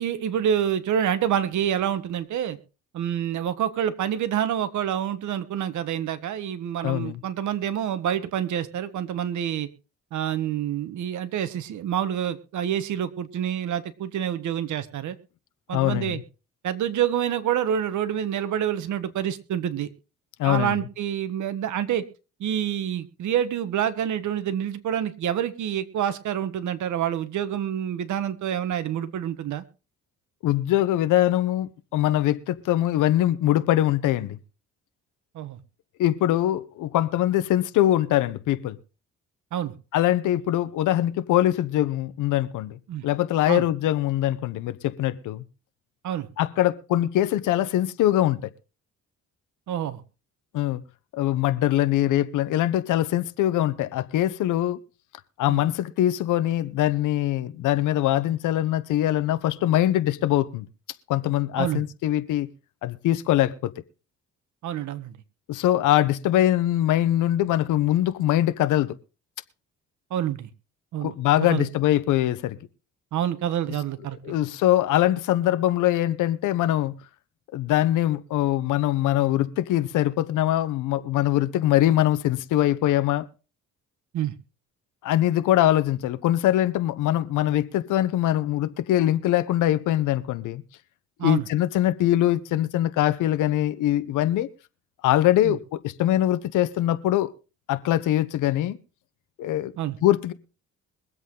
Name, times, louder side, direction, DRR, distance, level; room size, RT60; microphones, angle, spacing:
voice 1, 0.0-2.6 2.9-9.7 10.1-15.2 15.7-16.2 16.6-19.9 20.4-22.0 22.4-29.6 35.3-35.6 39.5-39.7 42.9-43.0 43.5-43.6 46.0-46.3 49.7-50.0 55.5-55.6 61.6-61.8 64.6-65.1 70.1-70.5 70.9-71.7 73.1-74.3 84.1-84.3 91.2-91.5 95.4-95.6 99.8-100.0, right 10 dB, 75° right, 1.5 m, -27 dB
voice 2, 6.8-7.2 15.7-16.2 20.4-20.8 30.4-34.4 36.0-38.8 39.9-45.4 46.4-48.5 50.5-50.8 51.1-54.8 55.4-60.7 61.1-62.5 62.8-63.7 65.5-69.0 71.0-72.6 74.2-77.0 77.5-83.3 85.0-90.6 91.2-94.5 95.0-97.3 97.7-98.8 99.4-99.7 100.0-100.3, left 13 dB, 85° left, 1.0 m, -23 dB
22.5 x 8.1 x 3.8 m
cardioid pair, 90°, 30 cm